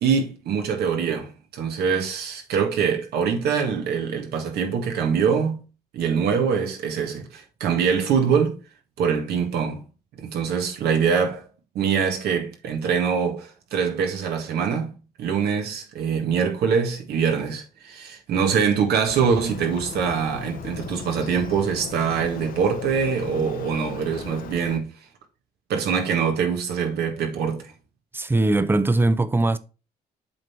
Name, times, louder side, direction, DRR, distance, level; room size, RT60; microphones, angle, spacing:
voice 1, 0.0-5.6 5.9-8.6 9.0-9.8 10.2-11.5 11.8-14.9 15.2-24.9 25.7-27.7, right 6 dB, 70° right, 2.0 m, -24 dB
Motorcycle, 19.1-24.8, left 10 dB, 55° left, 0.8 m, -37 dB
voice 2, 28.1-29.6, right 2 dB, 15° right, 0.6 m, -20 dB
7.7 x 3.8 x 4.4 m
cardioid pair, 110°, 17 cm